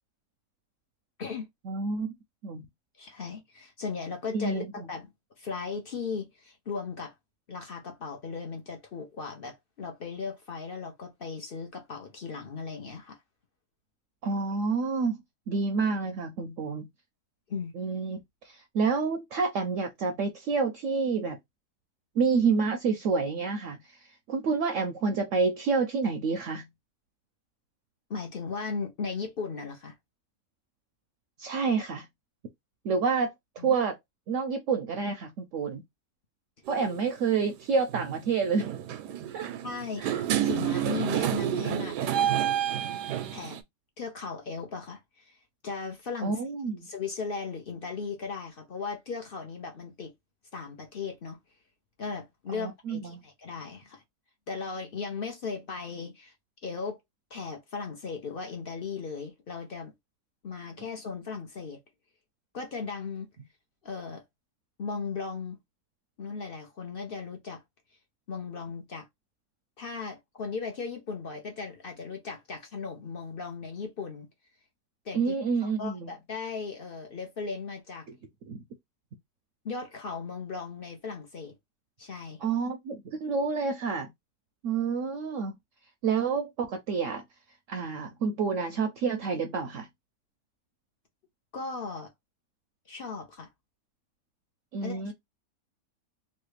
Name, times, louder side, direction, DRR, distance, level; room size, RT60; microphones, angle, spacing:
voice 1, 1.6-2.1 2.4-2.6 4.3-4.7 14.2-15.2 15.5-16.9 17.7-21.4 22.2-26.6 31.4-32.1 32.8-33.3 33.6-34.0 34.3-35.8 36.7-38.7 39.3-39.5 40.0-40.2 46.2-46.9 52.5-53.2 75.1-76.1 78.5-78.6 82.4-84.1 84.6-85.6 86.0-87.2 87.7-89.9 94.7-95.1, right 5 dB, 70° right, 0.8 m, -28 dB
voice 2, 3.0-5.1 5.4-7.1 7.5-13.2 17.5-17.7 28.1-29.9 33.6-33.8 39.6-40.0 40.4-42.1 43.3-43.6 44.0-45.3 45.6-46.4 46.8-50.1 50.5-51.4 52.0-54.0 54.5-56.3 56.6-57.0 57.3-59.9 60.4-61.8 62.5-63.3 63.8-64.2 64.8-65.6 66.2-67.6 68.3-69.1 69.8-74.3 75.0-75.4 75.6-78.1 79.6-81.5 82.0-82.4 91.5-92.1 92.9-93.5 94.8-95.1, left 5 dB, 50° left, 0.7 m, -37 dB
sound 1, 36.7-36.9 37.9-38.2 38.5-43.6, right 10 dB, 85° right, 1.2 m, -29 dB
3.2 x 2.4 x 3.1 m
omnidirectional pair, 1.7 m